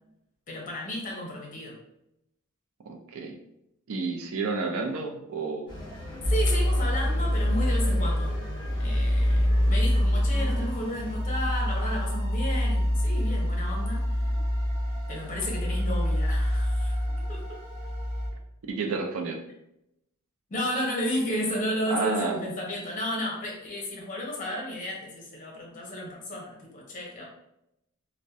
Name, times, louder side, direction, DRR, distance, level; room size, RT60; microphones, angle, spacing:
voice 1, 0.5-1.7 6.2-8.4 8.8-14.0 15.1-17.0 17.3-17.6 20.5-27.3, equal, 35° left, -2 dB, 0.7 m, -33 dB
voice 2, 2.9-3.3 3.9-5.8 18.7-19.4 21.9-22.4, right 4 dB, 65° right, 3 dB, 0.4 m, -30 dB
sound 1, 5.7-11.1, left 1 dB, 20° left, 1.0 m, -41 dB
sound 2, 6.2-18.3, equal, 35° right, 0.7 m, -26 dB
2.6 x 2.1 x 2.3 m, 0.82 s
head